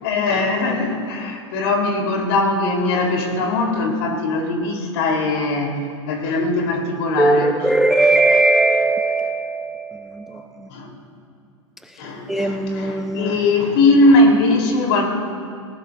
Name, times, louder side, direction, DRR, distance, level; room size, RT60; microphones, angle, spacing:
voice 1, 0.0-7.5 10.7-10.9 12.0-15.1, left 2 dB, 55° left, 1 dB, 3.4 m, -20 dB
voice 2, 7.2-10.7 11.8-12.0 12.3-13.4, right 2 dB, ahead, 8 dB, 0.3 m, -19 dB
18.5 x 17.5 x 2.6 m, 2.5 s
hypercardioid pair, 110°, 16 cm